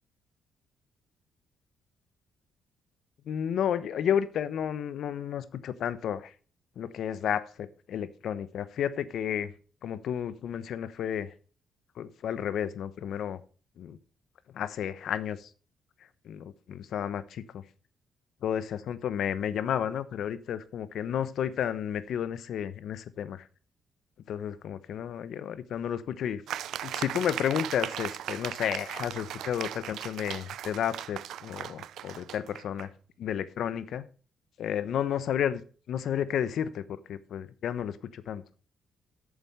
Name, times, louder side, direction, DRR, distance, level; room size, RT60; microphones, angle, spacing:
voice 1, 3.3-6.3 6.8-9.5 9.8-11.3 12.0-13.4 13.8-14.0 14.5-15.5 16.3-17.6 18.4-23.4 24.3-26.4 26.8-32.9 33.2-34.1 34.6-35.6 35.9-36.8 37.1-38.4, left 9 dB, 70° left, 14 dB, 0.9 m, -32 dB
sound 1, 26.5-32.9, right 11 dB, 75° right, 0.4 m, -38 dB
8.9 x 7.1 x 5.4 m, 0.39 s
cardioid pair, 90°, 0 cm